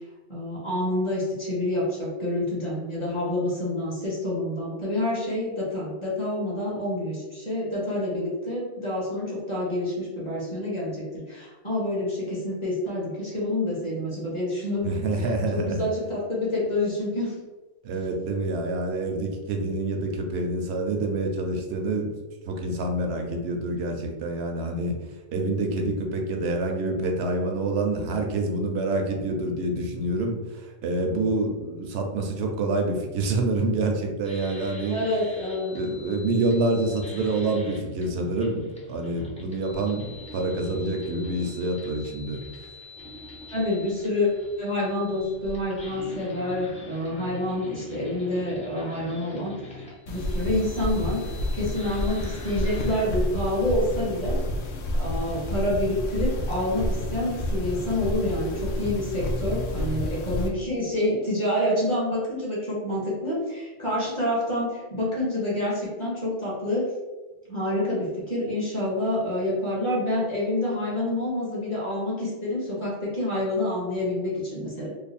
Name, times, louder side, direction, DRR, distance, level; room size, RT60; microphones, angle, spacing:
voice 1, 0.3-15.0 15.5-17.3 34.9-35.7 43.5-44.3 44.6-51.2 51.5-54.4 54.9-66.9 67.5-74.9, left 1 dB, 25° left, -6 dB, 1.2 m, -28 dB
voice 2, 14.8-15.8 17.8-22.1 22.5-25.0 25.3-35.0 35.7-42.4, right 2 dB, 65° right, 2 dB, 0.8 m, -27 dB
sound 1, 34.2-53.0, left 1 dB, 10° left, 0.5 m, -44 dB
sound 2, 50.1-60.5, left 1 dB, 70° left, 0.8 m, -29 dB
3.2 x 2.0 x 4.1 m, 1.2 s
omnidirectional pair, 1.3 m